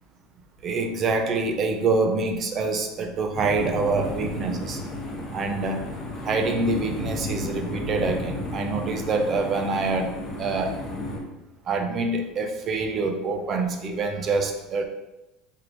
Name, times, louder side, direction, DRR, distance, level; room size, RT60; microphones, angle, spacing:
voice 1, 0.6-4.8 5.3-5.8 6.2-10.1 10.4-10.7 11.7-14.9, right 3 dB, 35° right, 5 dB, 0.6 m, -26 dB
sound 1, 3.3-11.2, left 1 dB, 20° left, 1.3 m, -33 dB
4.6 x 3.2 x 2.6 m, 0.96 s
supercardioid pair, 125°, 0 cm